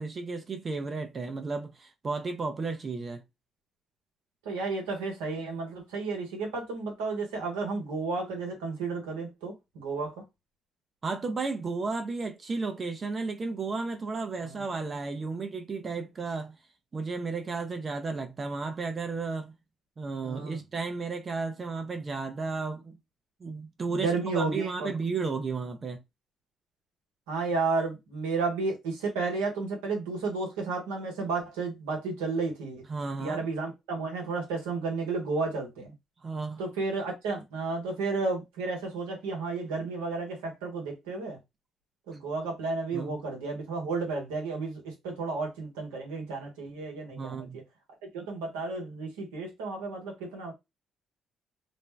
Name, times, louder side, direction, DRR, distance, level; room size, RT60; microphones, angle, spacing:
voice 1, 0.0-3.2 11.0-16.6 16.9-19.6 20.0-23.0 23.4-26.0 32.9-33.4 36.2-36.6 42.9-43.2 47.1-47.6, right 4 dB, 45° right, 0.5 m, -33 dB
voice 2, 4.4-10.2 14.4-14.6 20.2-20.6 23.9-24.9 27.3-32.8 33.2-35.9 36.6-41.4 42.1-47.6 48.1-50.5, right 3 dB, 90° right, 1.0 m, -32 dB
2.5 x 2.1 x 3.2 m
hypercardioid pair, 50°, 0 cm